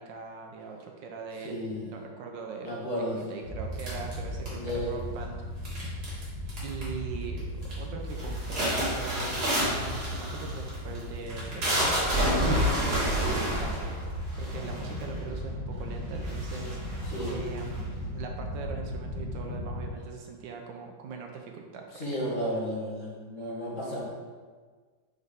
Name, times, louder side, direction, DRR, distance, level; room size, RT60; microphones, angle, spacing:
voice 1, 0.0-2.7 3.1-6.0 6.6-12.1 12.5-22.2, right 5 dB, 75° right, 2 dB, 1.3 m, -41 dB
voice 2, 1.4-1.9 2.6-3.4 4.5-4.9 13.2-13.4 17.1-17.4 21.9-24.1, equal, 45° left, -6 dB, 1.8 m, -33 dB
sound 1, 3.4-19.9, equal, 75° left, 2.0 m, -36 dB
sound 2, 3.8-4.9 5.6-6.2 6.5-7.0 7.4-7.7 8.1-15.1 15.8-15.9 16.2-17.8, equal, 55° right, 2.4 m, -29 dB
5.9 x 5.3 x 3.6 m, 1.5 s
omnidirectional pair, 2.1 m